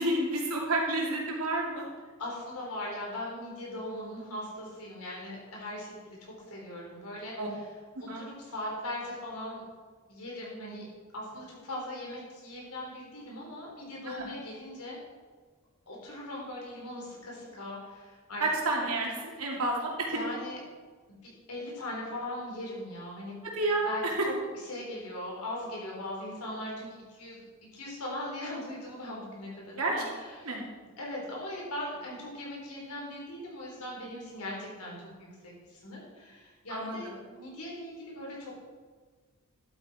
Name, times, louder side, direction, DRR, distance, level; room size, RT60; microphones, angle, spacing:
voice 1, 0.0-1.8 7.4-7.5 8.1-8.2 14.1-14.3 18.4-20.2 23.6-24.3 29.8-29.9 30.4-30.6 36.7-37.0, right 2 dB, 80° right, -2 dB, 2.6 m, -30 dB
voice 2, 2.2-7.7 8.0-9.6 10.1-10.9 11.1-15.0 15.9-18.4 20.1-20.6 21.2-23.4 23.8-27.4 27.7-30.5 31.0-38.5, left 1 dB, 85° left, -3 dB, 3.8 m, -40 dB
11.5 x 8.8 x 4.3 m, 1.5 s
head